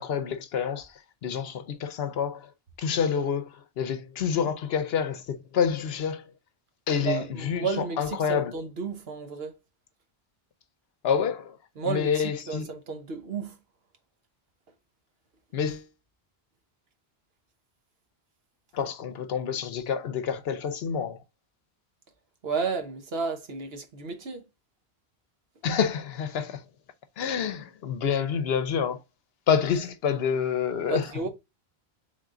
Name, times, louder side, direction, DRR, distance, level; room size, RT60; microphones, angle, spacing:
voice 1, 0.0-2.5 2.8-6.3 6.9-8.5 11.0-11.6 11.9-12.7 15.5-15.9 18.7-21.2 25.6-26.6 27.2-29.0 29.5-31.1, left 7 dB, 70° left, 0.8 m, -28 dB
voice 2, 7.0-9.5 11.8-13.6 22.4-24.4 30.9-31.3, right 5 dB, 70° right, 1.2 m, -32 dB
3.7 x 3.6 x 3.7 m
omnidirectional pair, 1.1 m